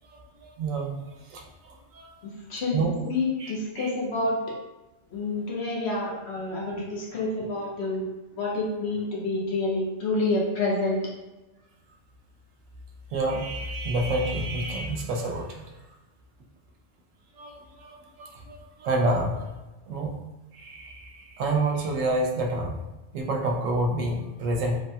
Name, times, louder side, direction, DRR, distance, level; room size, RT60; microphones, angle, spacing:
voice 1, 0.4-1.0 1.3-2.1 2.7-3.0 3.4-3.9 13.1-15.6 17.4-19.5 19.9-20.2 20.5-22.8 23.1-24.8, right 2 dB, 90° right, 2 dB, 1.0 m, -28 dB
voice 2, 2.2-4.4 5.1-11.1, left 2 dB, 60° left, -4 dB, 0.9 m, -28 dB
3.1 x 2.2 x 2.6 m, 1.1 s
omnidirectional pair, 1.3 m